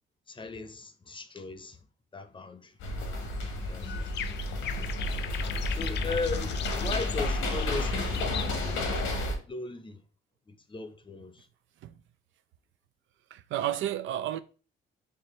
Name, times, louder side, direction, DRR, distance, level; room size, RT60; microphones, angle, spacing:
voice 1, 0.3-1.8 2.1-2.8 3.4-4.0 5.7-8.8 9.5-10.0 10.5-11.5, left 3 dB, 25° left, 0.6 m, -38 dB
sound 1, 2.8-9.3, left 2 dB, 85° left, 1.1 m, -31 dB
sound 2, 3.8-8.8, left 10 dB, 60° left, 0.4 m, -39 dB
voice 2, 13.3-14.4, right 12 dB, 75° right, 0.4 m, -31 dB
4.4 x 3.2 x 3.1 m
cardioid pair, 90°, 20 cm